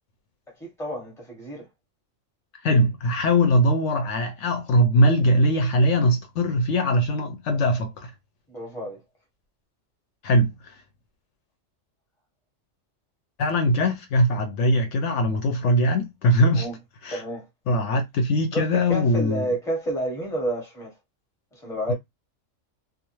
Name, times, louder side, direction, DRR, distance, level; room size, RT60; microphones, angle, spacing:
voice 1, 0.6-1.7 8.5-9.0 16.5-16.8 17.1-17.5 18.5-21.0 21.5-21.9, right 1 dB, 5° left, 0.8 m, -30 dB
voice 2, 2.6-8.1 10.2-10.7 13.4-16.7 17.0-17.2 17.7-19.4, equal, 70° left, 0.8 m, -21 dB
2.4 x 2.2 x 3.0 m
omnidirectional pair, 1.4 m